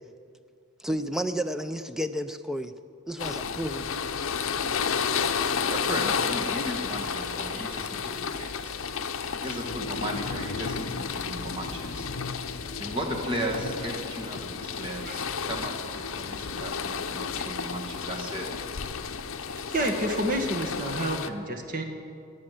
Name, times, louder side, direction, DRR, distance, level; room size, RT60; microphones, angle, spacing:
voice 1, 0.8-2.7 3.1-3.9, equal, ahead, 10 dB, 0.4 m, -31 dB
sound 1, 3.2-21.3, left 6 dB, 70° left, 0.7 m, -32 dB
voice 2, 5.7-8.8 9.4-12.1 12.8-18.5, right 1 dB, 25° right, 1 dB, 1.8 m, -35 dB
voice 3, 19.7-21.8, right 1 dB, 40° right, 2 dB, 1.6 m, -29 dB
20.5 x 7.5 x 7.7 m, 2.4 s
head